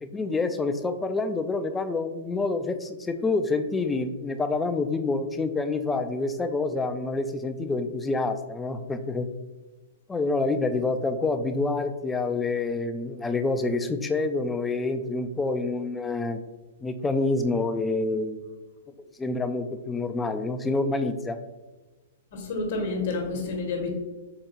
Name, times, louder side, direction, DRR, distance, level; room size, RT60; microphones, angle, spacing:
voice 1, 0.0-9.3 10.1-16.4 16.8-18.4 19.2-21.4, left 3 dB, 10° left, 8 dB, 0.3 m, -27 dB
voice 2, 22.3-23.9, left 3 dB, 60° left, 2 dB, 1.0 m, -29 dB
4.8 x 2.5 x 2.8 m, 1.2 s
hypercardioid pair, 120°, 0 cm